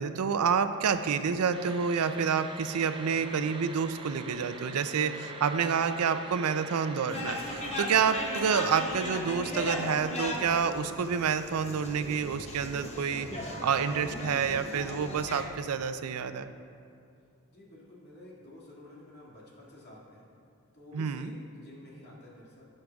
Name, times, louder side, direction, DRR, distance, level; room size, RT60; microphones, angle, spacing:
voice 1, 0.0-16.5 20.9-21.3, right 6 dB, 90° right, 10 dB, 0.4 m, -28 dB
sound 1, 1.5-8.8, right 2 dB, 25° right, 0.5 m, -44 dB
sound 2, 7.1-15.4, left 1 dB, 30° left, 1.0 m, -37 dB
voice 2, 17.5-20.3 20.7-22.7, left 2 dB, 50° left, -6 dB, 2.1 m, -51 dB
17.0 x 6.5 x 2.3 m, 2.4 s
head